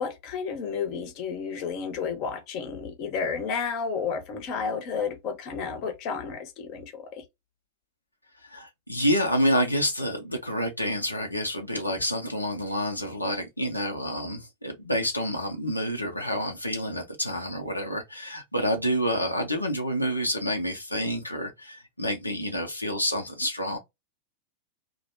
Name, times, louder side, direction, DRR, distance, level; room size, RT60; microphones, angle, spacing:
voice 1, 0.0-7.2, left 6 dB, 40° left, 0.7 m, -31 dB
voice 2, 8.4-23.8, equal, 85° left, 0.5 m, -28 dB
2.5 x 2.0 x 2.6 m
figure-of-eight pair, 90°, 0 cm